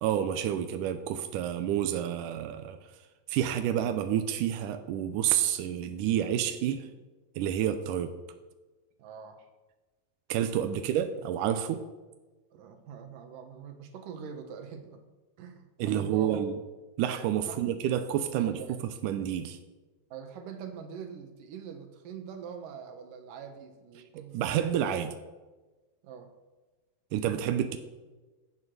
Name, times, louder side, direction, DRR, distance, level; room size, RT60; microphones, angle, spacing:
voice 1, 0.0-2.8 3.3-6.9 7.4-8.1 10.3-11.8 15.8-16.6 17.0-19.6 24.1-25.2 27.1-27.8, right 10 dB, 85° right, 8 dB, 1.9 m, -29 dB
voice 2, 9.0-9.5 12.5-15.0 15.4-16.4 17.5-17.8 18.3-18.8 20.1-24.5 26.0-26.3, right 7 dB, 65° right, 6 dB, 2.6 m, -44 dB
15.0 x 8.3 x 6.6 m, 1.2 s
omnidirectional pair, 4.6 m